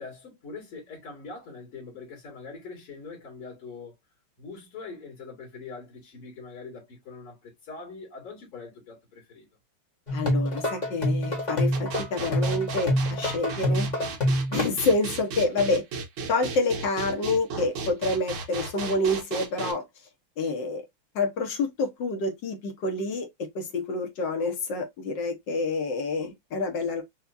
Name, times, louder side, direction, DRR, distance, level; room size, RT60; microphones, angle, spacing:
voice 1, 0.0-3.9 4.4-9.5, left 4 dB, 80° left, 3.2 m, -43 dB
voice 2, 10.1-13.9 14.5-15.8 16.3-19.8 20.4-20.8 21.1-27.0, left 2 dB, 60° left, 1.7 m, -28 dB
sound 1, 10.1-14.7, equal, 25° left, 1.1 m, -26 dB
sound 2, 11.7-19.7, right 4 dB, 70° right, 1.9 m, -34 dB
5.9 x 2.6 x 2.6 m
omnidirectional pair, 2.4 m